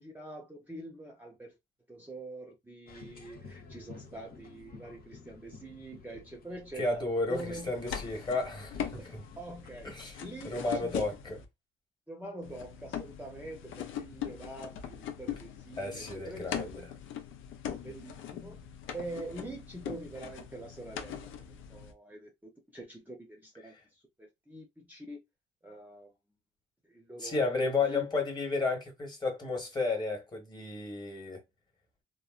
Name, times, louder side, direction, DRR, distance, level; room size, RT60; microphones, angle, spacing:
voice 1, 0.0-1.6 1.9-7.0 7.3-7.7 9.0-9.9 10.2-11.2 12.1-16.9 17.6-18.6 18.9-25.2 25.6-26.1 26.9-27.4 27.8-28.1, right 2 dB, 10° right, 0.7 m, -45 dB
sound 1, 2.9-10.3, left 4 dB, 50° left, 0.9 m, -53 dB
voice 2, 6.8-9.2 9.8-10.2 10.4-11.4 15.8-16.7 27.2-31.4, left 3 dB, 20° left, 1.3 m, -32 dB
sound 2, 7.3-11.4 12.4-21.9, left 9 dB, 80° left, 0.6 m, -41 dB
3.0 x 2.1 x 2.4 m
cardioid pair, 90°, 20 cm